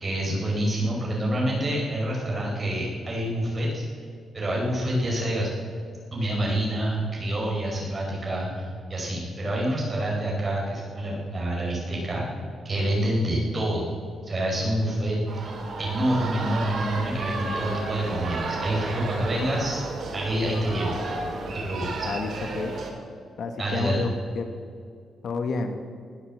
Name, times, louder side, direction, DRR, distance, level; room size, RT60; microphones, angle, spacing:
voice 1, 0.0-3.8 4.3-5.5 6.1-12.3 12.6-13.9 14.2-15.5 15.8-19.8 20.1-21.0 21.5-22.1 23.6-24.0, right 1 dB, 25° right, -3 dB, 4.9 m, -27 dB
sound 1, 15.3-22.9, right 3 dB, 50° right, 2.7 m, -32 dB
voice 2, 22.0-22.8 23.4-24.6 25.2-25.8, left 4 dB, 55° left, 6 dB, 1.2 m, -30 dB
20.0 x 8.2 x 7.4 m, 2.2 s
wide cardioid pair, 155°, 0 cm